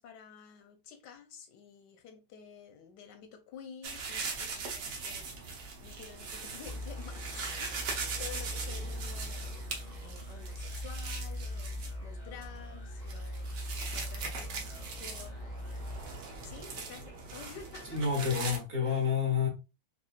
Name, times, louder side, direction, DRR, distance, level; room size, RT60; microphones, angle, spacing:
voice 1, 0.0-5.5 5.8-15.7 16.4-18.0 18.9-19.0, left 7 dB, 90° left, 1.4 m, -51 dB
sound 1, 3.8-18.6, right 4 dB, 90° right, 1.6 m, -41 dB
sound 2, 6.7-17.0, left 1 dB, 45° left, 0.5 m, -41 dB
voice 2, 17.9-19.5, left 6 dB, 45° right, 1.4 m, -29 dB
5.4 x 2.4 x 2.4 m
omnidirectional pair, 1.8 m